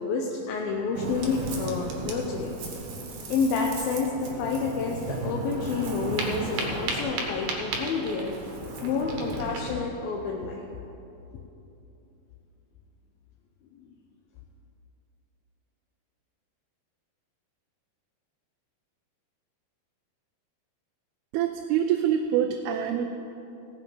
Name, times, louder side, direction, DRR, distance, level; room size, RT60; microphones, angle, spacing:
voice 1, 0.0-2.6 3.3-8.3 8.8-10.6 13.8-13.9, left 4 dB, 75° left, -1 dB, 2.6 m, -29 dB
Ocean, 0.9-9.7, right 3 dB, 65° right, 2.9 m, -34 dB
voice 2, 21.3-23.1, right 9 dB, 85° right, 5 dB, 2.6 m, -25 dB
18.0 x 7.7 x 5.6 m, 2.9 s
omnidirectional pair, 4.4 m